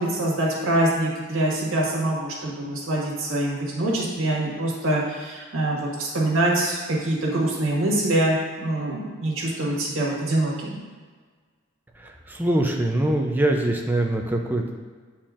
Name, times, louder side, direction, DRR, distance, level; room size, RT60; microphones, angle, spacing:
voice 1, 0.0-10.8, right 1 dB, 70° right, -4 dB, 1.6 m, -24 dB
voice 2, 12.0-14.7, right 1 dB, 10° right, 2 dB, 0.5 m, -23 dB
8.8 x 4.3 x 2.5 m, 1.5 s
head